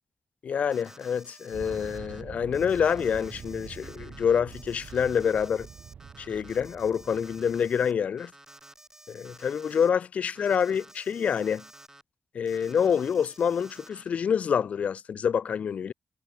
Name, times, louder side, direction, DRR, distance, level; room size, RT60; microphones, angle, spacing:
voice 1, 0.4-5.7 6.2-8.3 9.1-11.6 12.3-15.9, left 7 dB, 70° left, 0.5 m, -27 dB
Alarm, 0.7-2.2 2.5-7.9 8.2-9.9 10.3-12.0 12.4-14.1, right 2 dB, 20° right, 4.0 m, -52 dB
sound 1, 1.5-8.0, right 7 dB, 70° right, 0.3 m, -45 dB
cardioid pair, 55°, 2 cm